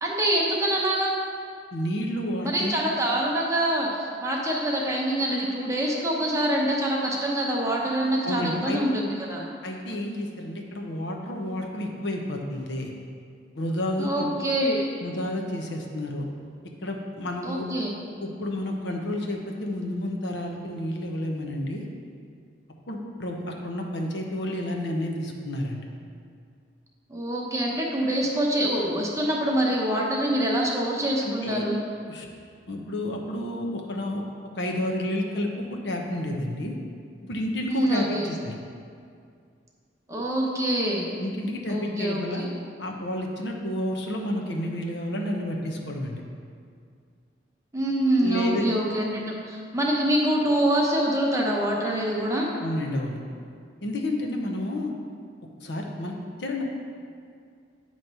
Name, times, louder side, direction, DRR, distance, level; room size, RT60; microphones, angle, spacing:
voice 1, 0.0-1.1 2.4-9.4 14.0-14.9 17.4-18.0 27.1-31.8 37.7-38.3 40.1-41.1 41.7-42.5 47.7-52.5, right 1 dB, 15° right, -3 dB, 0.9 m, -25 dB
voice 2, 1.7-2.7 8.2-8.8 9.6-12.9 13.5-14.3 15.0-16.2 16.8-17.6 18.2-21.9 22.9-25.8 31.2-31.7 32.1-32.3 32.7-34.2 34.5-36.8 37.2-38.6 41.2-42.5 42.8-46.2 48.2-48.7 52.6-53.2 53.8-54.9 55.6-56.6, left 1 dB, 65° left, 1 dB, 0.8 m, -30 dB
9.0 x 3.1 x 5.4 m, 2.2 s
head